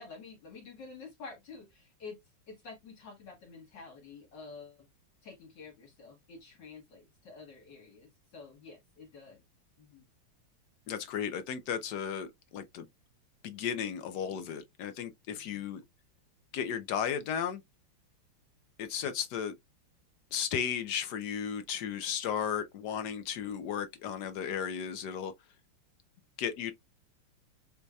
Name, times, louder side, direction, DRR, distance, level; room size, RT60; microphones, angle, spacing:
voice 1, 0.0-2.2 2.5-4.9 5.2-9.4 9.8-10.1 15.3-15.7, left 4 dB, 60° left, 1.6 m, -49 dB
voice 2, 10.9-12.9 13.4-15.8 16.5-17.6 18.8-19.5 20.3-25.3 26.4-26.7, left 8 dB, 80° left, 0.9 m, -34 dB
6.4 x 2.7 x 2.2 m
omnidirectional pair, 2.4 m